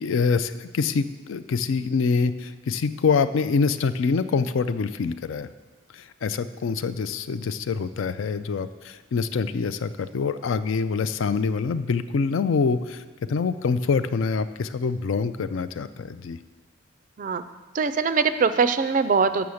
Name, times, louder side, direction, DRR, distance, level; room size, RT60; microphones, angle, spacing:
voice 1, 0.0-5.5 5.9-13.0 13.3-16.4, left 5 dB, 65° left, 13 dB, 0.4 m, -25 dB
voice 2, 17.7-19.5, right 5 dB, 40° right, 12 dB, 0.3 m, -22 dB
7.0 x 6.9 x 6.4 m, 1.3 s
head